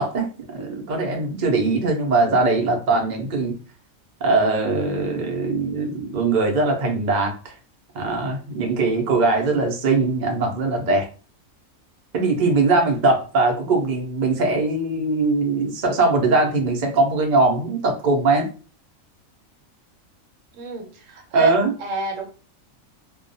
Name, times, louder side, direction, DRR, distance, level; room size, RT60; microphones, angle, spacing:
voice 1, 0.0-3.6 4.2-7.5 7.9-11.1 12.1-18.5 21.3-21.7, right 3 dB, 55° right, 1 dB, 0.5 m, -21 dB
voice 2, 20.5-21.5 21.8-22.3, right 2 dB, 70° right, 3 dB, 0.9 m, -30 dB
2.3 x 2.1 x 2.6 m, 0.36 s
omnidirectional pair, 1.4 m